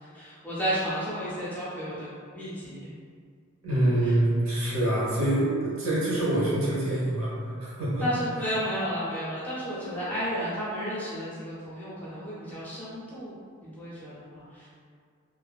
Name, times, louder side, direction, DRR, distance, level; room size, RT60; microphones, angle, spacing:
voice 1, 0.0-2.9 4.0-4.1 8.0-13.3 13.6-14.7, equal, 5° left, -10 dB, 0.5 m, -32 dB
voice 2, 3.6-7.3 7.6-8.1 9.7-10.1, right 1 dB, 75° right, -8 dB, 0.9 m, -26 dB
2.5 x 2.4 x 2.3 m, 2.1 s
head